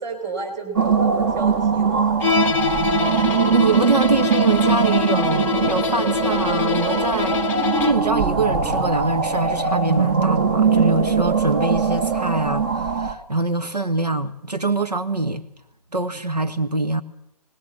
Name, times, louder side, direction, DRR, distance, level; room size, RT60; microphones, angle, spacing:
voice 1, 0.0-2.2 2.9-3.0, right 4 dB, 15° right, 4.3 m, -32 dB
sound 1, 0.8-13.1, right 5 dB, 35° right, 1.6 m, -21 dB
Bowed string instrument, 2.2-8.1, left 7 dB, 10° left, 0.8 m, -25 dB
voice 2, 3.1-15.5 15.9-17.0, right 3 dB, 85° right, 1.4 m, -24 dB
20.0 x 19.0 x 7.5 m
figure-of-eight pair, 135°, 20 cm